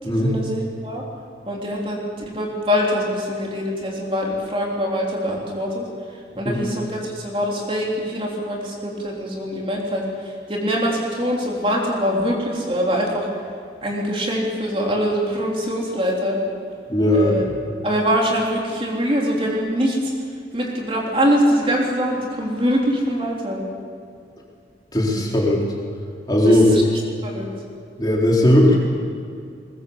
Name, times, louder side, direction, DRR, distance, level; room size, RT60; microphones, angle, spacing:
voice 1, 0.0-1.0 1.5-5.9 6.4-13.3 13.8-16.4 17.1-17.5 17.8-20.1 20.5-23.6 26.4-27.5, equal, 30° right, -2 dB, 3.7 m, -23 dB
voice 2, 16.9-17.5 24.9-25.6 26.3-26.8 28.0-28.8, left 1 dB, 25° left, -3 dB, 3.9 m, -17 dB
22.0 x 21.5 x 7.2 m, 2.3 s
head